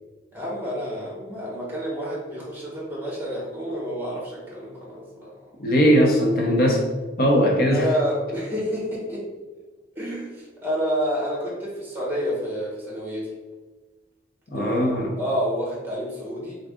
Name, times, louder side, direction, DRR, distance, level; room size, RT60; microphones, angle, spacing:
voice 1, 0.3-5.3 6.6-6.7 7.7-9.2 9.9-13.3 14.5-16.6, equal, 10° right, -4 dB, 1.3 m, -29 dB
voice 2, 5.6-6.8 7.2-7.9 14.5-15.1, equal, 55° left, 0 dB, 0.7 m, -19 dB
4.0 x 3.6 x 3.6 m, 1.3 s
head